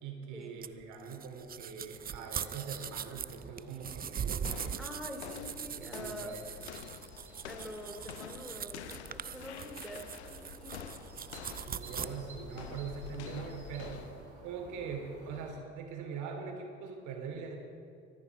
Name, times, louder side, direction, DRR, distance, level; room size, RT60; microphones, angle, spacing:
voice 1, 0.0-4.8 5.8-6.4 11.7-14.0 14.4-17.6, right 6 dB, 65° right, 3 dB, 3.0 m, -42 dB
sound 1, 0.6-12.1, right 8 dB, 30° right, 0.6 m, -41 dB
sound 2, 1.9-15.5, right 2 dB, 90° right, 2.9 m, -54 dB
sound 3, 4.4-14.3, left 8 dB, 85° left, 0.7 m, -48 dB
voice 2, 4.8-6.5 7.4-10.9, equal, ahead, 3 dB, 2.8 m, -46 dB
24.0 x 9.7 x 4.7 m, 2.4 s
figure-of-eight pair, 50°, 33 cm